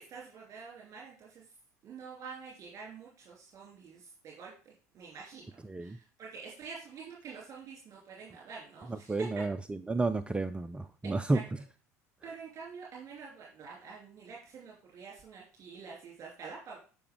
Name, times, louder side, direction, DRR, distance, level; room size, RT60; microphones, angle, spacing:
voice 1, 0.0-1.4 1.8-9.3 11.0-11.4 12.2-16.8, right 5 dB, 40° right, -2 dB, 2.8 m, -47 dB
voice 2, 5.6-6.0 8.9-11.4, right 3 dB, 10° right, 13 dB, 0.4 m, -31 dB
10.0 x 5.8 x 3.6 m, 0.39 s
figure-of-eight pair, 65°, 9 cm